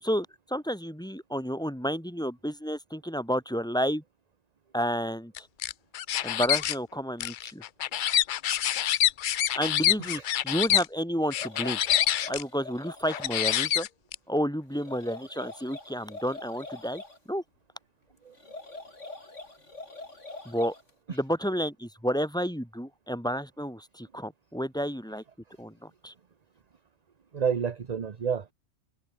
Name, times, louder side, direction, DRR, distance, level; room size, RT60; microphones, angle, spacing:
voice 1, 0.0-4.0 4.7-5.5 6.2-7.6 9.5-11.8 12.3-13.9 14.3-17.0 17.3-17.4 20.5-20.7 21.1-25.2 25.6-26.1, equal, 5° left, 3.6 m, -31 dB
sound 1, 5.4-6.7 7.2-10.8 11.3-12.4 13.1-14.1, left 11 dB, 60° left, 0.5 m, -26 dB
sound 2, 11.2-13.7 14.7-17.2 18.3-20.9, left 2 dB, 75° left, 5.0 m, -44 dB
voice 2, 27.3-28.5, right 7 dB, 40° right, 0.8 m, -30 dB
omnidirectional pair, 1.3 m